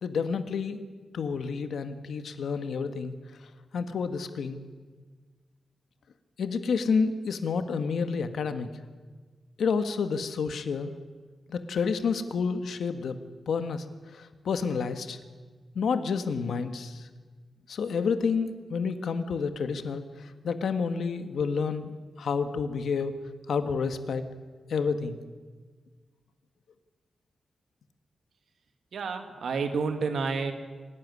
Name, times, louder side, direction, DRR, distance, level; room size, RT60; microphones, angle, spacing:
voice 1, 0.0-0.8 1.1-3.1 3.7-4.6 6.4-8.7 9.6-10.9 11.5-13.2 13.5-13.8 14.1-15.2 15.7-17.0 17.7-21.9 22.2-23.1 23.5-24.3 24.7-25.2, left 5 dB, 80° left, 9 dB, 1.5 m, -29 dB
voice 2, 28.9-30.5, right 4 dB, 75° right, 6 dB, 2.3 m, -29 dB
26.5 x 12.0 x 9.8 m, 1.4 s
wide cardioid pair, 130°, 0 cm